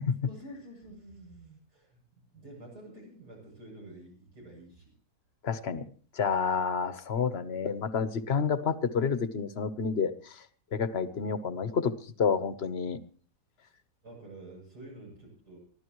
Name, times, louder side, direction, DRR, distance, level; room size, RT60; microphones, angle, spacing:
voice 1, 0.3-2.0 2.3-4.9 13.6-13.7 14.0-15.6, right 1 dB, 85° right, -2 dB, 8.6 m, -49 dB
voice 2, 5.4-5.9 6.1-10.4 10.7-11.9 12.2-13.0, left 6 dB, 45° left, 12 dB, 1.1 m, -29 dB
24.0 x 15.0 x 3.1 m, 0.43 s
omnidirectional pair, 1.7 m